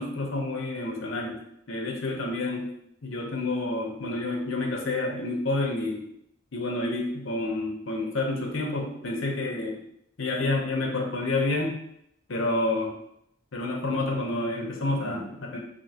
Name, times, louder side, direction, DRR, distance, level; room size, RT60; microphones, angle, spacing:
voice 1, 0.0-1.4 1.7-2.7 3.0-6.0 6.5-9.8 10.2-11.8 12.3-12.9 13.5-15.6, left 2 dB, 80° left, 0 dB, 0.8 m, -29 dB
5.2 x 2.7 x 2.8 m, 0.75 s
head